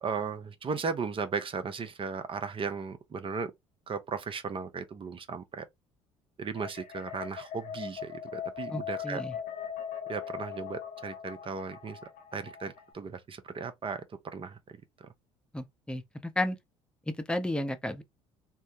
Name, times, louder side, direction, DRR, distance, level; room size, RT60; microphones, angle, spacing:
voice 1, 0.0-3.5 3.9-5.7 6.4-9.2 10.1-12.0 12.3-14.0 14.3-15.1, right 5 dB, 35° right, 0.8 m, -36 dB
sound 1, 6.6-12.9, left 8 dB, 60° left, 0.9 m, -40 dB
voice 2, 8.7-9.3 15.5-16.6 17.1-18.0, left 1 dB, 5° left, 0.7 m, -33 dB
3.4 x 2.1 x 2.7 m
hypercardioid pair, 65°, 15 cm